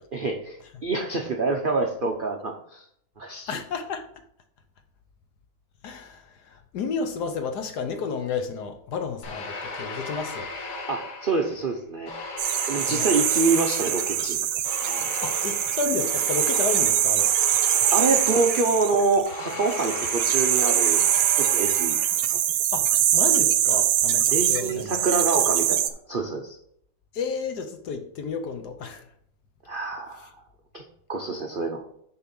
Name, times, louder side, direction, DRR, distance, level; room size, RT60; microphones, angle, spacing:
voice 1, 0.1-2.8 3.2-3.5 10.9-12.1 12.7-14.4 14.8-15.1 17.9-21.0 21.4-22.0 22.3-22.4 24.3-26.6 29.7-30.3 30.7-30.8 31.1-31.9, right 3 dB, 65° right, 0.5 m, -26 dB
voice 2, 3.5-4.1 5.8-10.5 12.9-13.1 15.2-17.3 22.7-25.1 27.1-29.0, left 5 dB, 60° left, 1.2 m, -31 dB
sound 1, 9.2-11.6 12.1-22.4, left 3 dB, 90° left, 2.0 m, -36 dB
sound 2, 12.4-25.9, right 11 dB, 90° right, 1.4 m, -23 dB
6.8 x 4.7 x 5.9 m
omnidirectional pair, 2.2 m